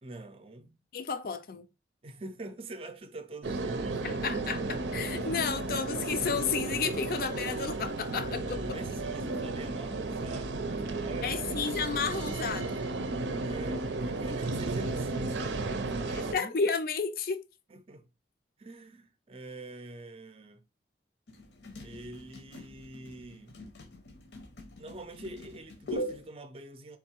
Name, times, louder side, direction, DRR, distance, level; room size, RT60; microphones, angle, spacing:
voice 1, 0.0-0.8 2.0-4.2 8.3-11.4 13.3-16.6 17.7-18.0 18.6-20.6 21.8-23.6 24.8-27.0, right 2 dB, 30° right, 0.5 m, -45 dB
voice 2, 0.9-1.7 4.0-8.6 11.2-12.9 16.3-17.4, left 5 dB, 55° left, 0.4 m, -32 dB
sound 1, 3.4-16.3, right 3 dB, 90° right, 0.6 m, -33 dB
sound 2, 21.3-26.3, equal, 80° left, 0.8 m, -42 dB
3.8 x 2.7 x 4.4 m
head